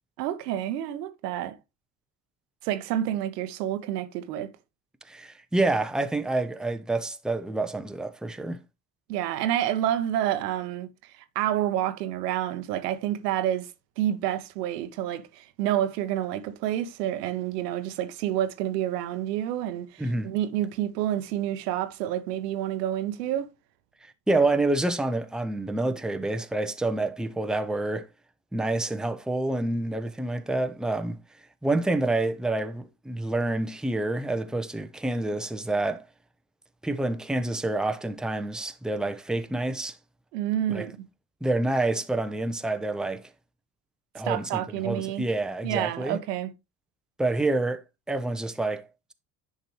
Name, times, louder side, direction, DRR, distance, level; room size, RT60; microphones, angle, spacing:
voice 1, 0.2-1.5 2.6-4.5 9.1-10.9 11.1-13.7 14.0-23.5 40.3-40.9 44.2-45.2 45.6-46.5, right 12 dB, 80° right, 0.9 m, -29 dB
voice 2, 5.1-8.6 20.0-20.3 24.0-28.1 28.5-31.2 31.6-36.1 36.8-40.0 40.7-40.9 41.4-43.2 44.1-46.2 47.2-47.8 48.1-49.1, right 2 dB, ahead, 0.8 m, -28 dB
10.0 x 4.7 x 3.0 m
hypercardioid pair, 55°, 47 cm